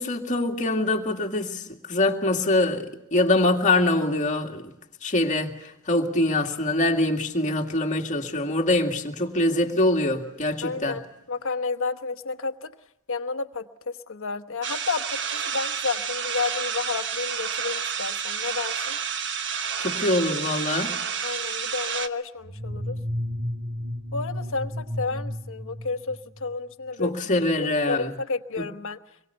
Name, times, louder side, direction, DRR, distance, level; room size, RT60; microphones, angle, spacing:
voice 1, 0.0-4.7 5.0-11.0 19.8-20.9 27.0-28.1, left 2 dB, 35° left, 2.2 m, -24 dB
voice 2, 10.6-12.7 13.1-13.7 14.1-19.0 21.2-23.0 24.1-27.1 27.6-29.0, left 4 dB, 65° left, 1.1 m, -31 dB
sound 1, 14.6-22.1, right 7 dB, 55° right, 1.1 m, -30 dB
sound 2, 22.4-26.5, equal, 90° right, 2.3 m, -32 dB
26.0 x 22.5 x 6.9 m
head